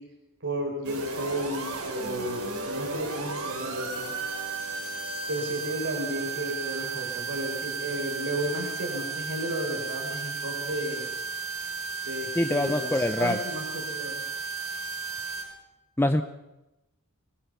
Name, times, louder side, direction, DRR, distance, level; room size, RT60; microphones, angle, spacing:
voice 1, 0.4-4.1 5.3-11.1 12.0-14.2, right 1 dB, 60° right, 0 dB, 4.5 m, -33 dB
sound 1, 0.8-15.4, right 4 dB, 90° right, 6.1 m, -34 dB
voice 2, 12.3-13.4 16.0-16.2, left 1 dB, 10° left, 7 dB, 0.7 m, -24 dB
22.5 x 20.0 x 6.9 m, 0.97 s
head